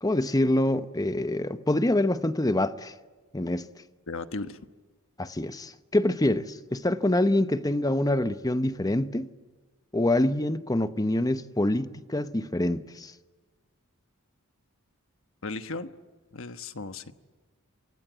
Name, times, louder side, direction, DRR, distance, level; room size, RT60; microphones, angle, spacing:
voice 1, 0.0-2.9 3.3-3.7 5.2-9.3 9.9-13.1, left 1 dB, 15° left, 0.9 m, -25 dB
voice 2, 4.1-4.6 15.4-15.9 16.3-17.1, left 3 dB, 60° left, 1.3 m, -35 dB
28.0 x 25.0 x 8.1 m
head